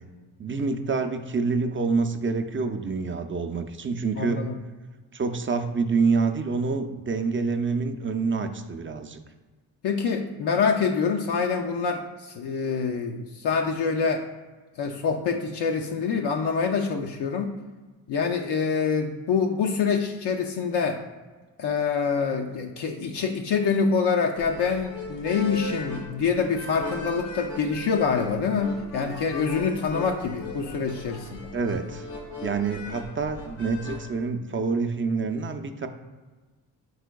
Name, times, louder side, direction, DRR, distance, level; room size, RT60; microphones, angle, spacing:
voice 1, 0.4-4.5 5.1-9.2 31.5-32.1 32.4-35.9, right 4 dB, 30° right, 7 dB, 0.4 m, -27 dB
voice 2, 4.1-4.6 9.8-14.3 14.8-17.5 18.1-21.0 21.6-31.5, left 5 dB, 70° left, 2 dB, 0.5 m, -26 dB
sound 1, 24.4-34.0, left 2 dB, 85° left, 1.1 m, -38 dB
4.8 x 4.3 x 2.3 m, 1.3 s
cardioid pair, 60°, 42 cm